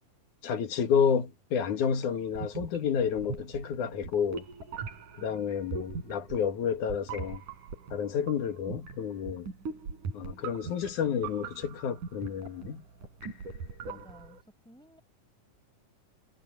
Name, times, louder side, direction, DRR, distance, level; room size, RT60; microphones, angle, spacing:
voice 1, 0.4-4.5 5.1-7.4 7.9-9.5 10.1-12.8, left 7 dB, 70° left, 3.3 m, -30 dB
sound 1, 2.3-14.4, right 5 dB, 70° right, 6.1 m, -41 dB
voice 2, 13.9-15.0, equal, ahead, 5.2 m, -55 dB
omnidirectional pair, 3.7 m